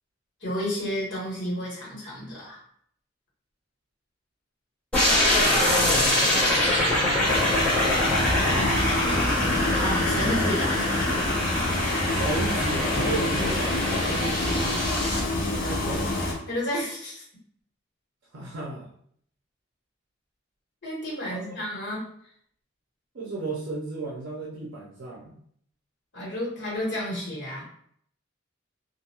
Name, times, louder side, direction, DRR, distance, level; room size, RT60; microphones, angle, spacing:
voice 1, 0.4-2.6 9.7-10.8 16.5-17.2 20.8-22.1 26.1-27.7, left 1 dB, 65° left, -6 dB, 1.4 m, -31 dB
sound 1, 4.9-15.2, left 1 dB, 5° left, 0.9 m, -24 dB
voice 2, 5.6-6.2 10.2-10.3 10.6-10.7 12.0-14.4 15.4-16.3 18.3-18.9 21.3-21.6 23.1-25.4, right 3 dB, 65° right, -4 dB, 0.5 m, -35 dB
sound 2, 7.2-16.3, left 2 dB, 50° left, 0.6 m, -27 dB
Drum, 13.0-15.1, left 1 dB, 85° left, 1.2 m, -38 dB
2.5 x 2.2 x 2.9 m, 0.64 s
head